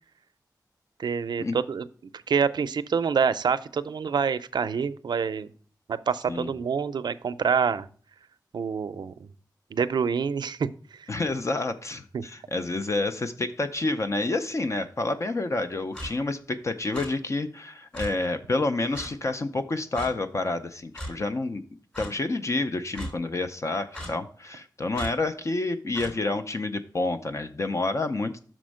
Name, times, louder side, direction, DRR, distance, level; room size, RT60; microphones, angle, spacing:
voice 1, 1.0-1.9 2.3-5.5 5.9-7.9 8.5-9.3 9.7-10.7 12.1-12.2, right 6 dB, 85° right, 13 dB, 0.4 m, -26 dB
voice 2, 11.1-21.6 22.0-28.5, left 2 dB, 40° left, 8 dB, 0.5 m, -29 dB
Clock, 15.9-16.1 16.9-17.1 17.9-18.1 18.9-19.1 19.9-20.1 20.9-21.1 21.9-22.1 22.9-23.1 23.9-24.1 24.9-25.1 25.9-26.1, equal, 15° left, 3.2 m, -36 dB
6.1 x 4.3 x 6.2 m, 0.44 s
wide cardioid pair, 120°, 7 cm